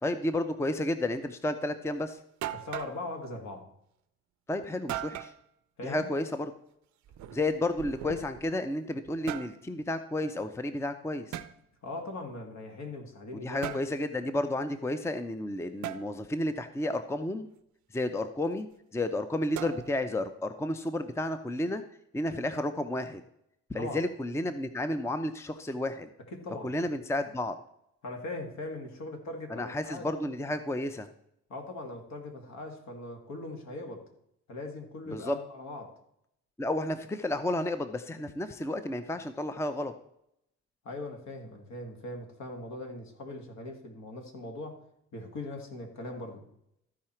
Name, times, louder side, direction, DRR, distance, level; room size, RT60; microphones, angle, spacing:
voice 1, 0.0-2.2 4.5-5.3 5.8-6.5 7.3-11.4 13.3-17.5 17.9-18.7 18.9-21.8 22.1-23.2 23.7-26.1 26.6-27.6 29.5-31.1 35.1-35.4 36.6-39.9, left 1 dB, 10° left, 10 dB, 0.6 m, -31 dB
sound 1, 1.9-2.0 2.4-3.0 4.9-5.4 7.1-8.5 9.1-9.6 11.3-11.5 13.6-13.9 15.8-16.1 19.6-20.1, right 12 dB, 70° right, 0.7 m, -38 dB
voice 2, 2.5-3.7 5.8-6.1 11.8-13.7 23.7-24.0 26.3-26.7 28.0-30.1 31.5-34.1 34.5-35.9 40.8-44.8 45.1-46.4, left 2 dB, 65° left, 3 dB, 2.3 m, -40 dB
13.5 x 4.8 x 4.4 m, 0.76 s
cardioid pair, 90°, 30 cm